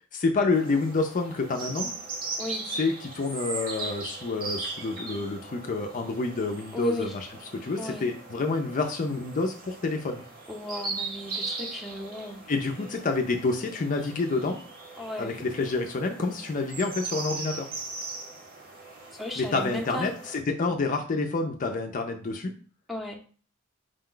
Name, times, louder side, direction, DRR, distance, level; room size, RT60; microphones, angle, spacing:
voice 1, 0.1-1.9 2.8-7.3 7.6-10.2 12.5-14.6 15.2-17.7 19.4-22.5, left 3 dB, 40° left, 4 dB, 0.4 m, -28 dB
sound 1, 0.5-20.4, right 3 dB, 45° right, 0.8 m, -39 dB
voice 2, 6.7-7.2 7.8-8.1 10.5-12.4 15.0-15.3 19.2-20.1 22.9-23.2, left 2 dB, ahead, 1 dB, 0.7 m, -35 dB
5.1 x 2.2 x 3.7 m, 0.40 s
head